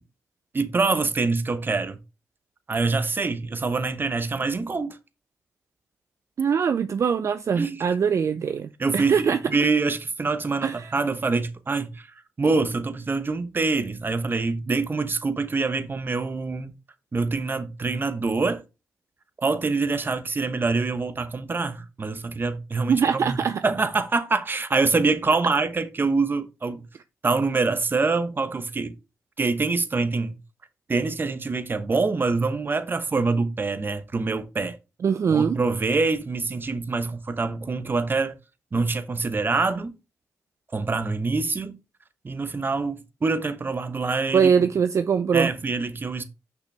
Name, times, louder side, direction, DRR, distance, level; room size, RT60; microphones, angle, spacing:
voice 1, 0.5-2.0 2.7-5.0 7.5-7.8 8.8-12.1 12.4-16.7 17.1-18.6 19.4-26.8 27.2-29.0 29.4-30.3 30.9-34.8 35.3-38.4 38.7-39.9 40.7-41.8 42.2-44.7 45.3-46.2, right 3 dB, 35° right, 1.0 m, -25 dB
voice 2, 6.4-9.4 10.6-10.9 22.9-23.7 35.0-35.6 44.3-45.5, right 6 dB, 55° right, 0.4 m, -22 dB
6.0 x 5.9 x 3.3 m
cardioid pair, 70°, 6 cm